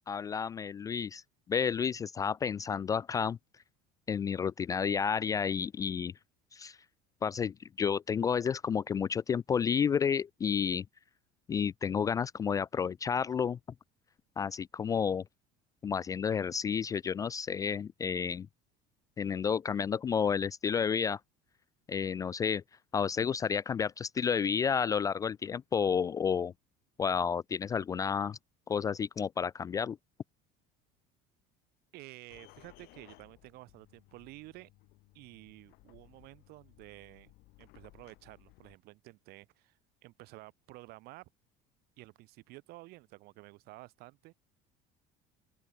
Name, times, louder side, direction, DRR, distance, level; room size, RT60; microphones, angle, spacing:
voice 1, 0.1-1.2 1.5-3.4 4.1-6.1 6.5-6.8 7.2-10.8 11.5-13.6 14.4-15.2 15.8-18.5 19.2-21.2 21.9-22.6 22.9-26.5 27.0-28.4 28.7-30.0, left 7 dB, 20° left, 0.3 m, -31 dB
voice 2, 31.9-34.7 35.1-37.3 37.6-39.8 40.0-41.3 42.0-44.3, right 21 dB, 60° right, 5.0 m, -52 dB
sound 1, 32.3-38.8, left 20 dB, 60° left, 5.2 m, -60 dB
open air
cardioid pair, 170°, 19 cm